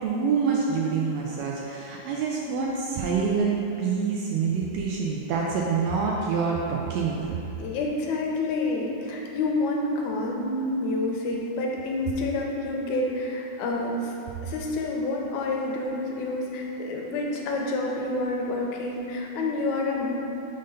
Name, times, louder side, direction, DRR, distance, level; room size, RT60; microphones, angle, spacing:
voice 1, 0.0-7.3, right 5 dB, 80° right, -2 dB, 1.5 m, -26 dB
voice 2, 7.6-14.1 14.4-20.1, left 2 dB, 90° left, -1 dB, 2.1 m, -28 dB
5.2 x 3.9 x 5.3 m, 2.8 s
omnidirectional pair, 3.4 m